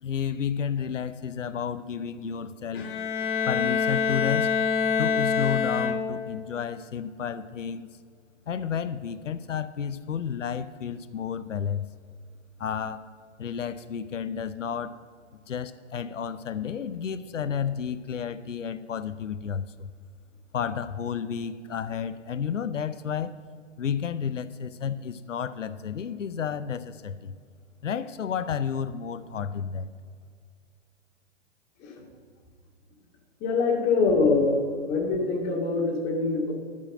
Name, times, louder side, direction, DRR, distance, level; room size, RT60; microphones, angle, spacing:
voice 1, 0.0-2.9 3.5-4.5 5.0-7.9 8.5-11.9 12.6-13.0 13.4-15.0 15.5-19.9 20.5-23.4 23.8-27.3 27.8-29.9, left 7 dB, 85° left, 13 dB, 0.6 m, -31 dB
Bowed string instrument, 2.7-6.4, left 6 dB, 45° left, 1.2 m, -26 dB
voice 2, 33.4-34.6 34.9-36.5, left 4 dB, 25° left, 0 dB, 2.2 m, -24 dB
12.5 x 5.6 x 7.6 m, 2.1 s
figure-of-eight pair, 125°, 37 cm